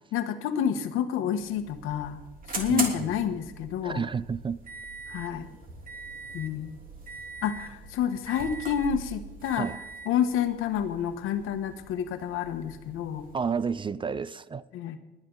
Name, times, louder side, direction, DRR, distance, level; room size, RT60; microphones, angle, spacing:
voice 1, 0.1-2.2 2.5-4.1 5.1-5.5 6.3-6.8 7.4-9.7 10.0-13.3 14.7-15.0, left 9 dB, 85° left, 1.3 m, -29 dB
sound 1, 1.3-13.7, right 3 dB, 45° right, 3.1 m, -41 dB
voice 2, 2.7-3.1 3.8-4.6 9.6-9.8 13.3-14.6, right 6 dB, 25° right, 0.4 m, -30 dB
20.0 x 9.6 x 3.9 m
cardioid pair, 110°, 21 cm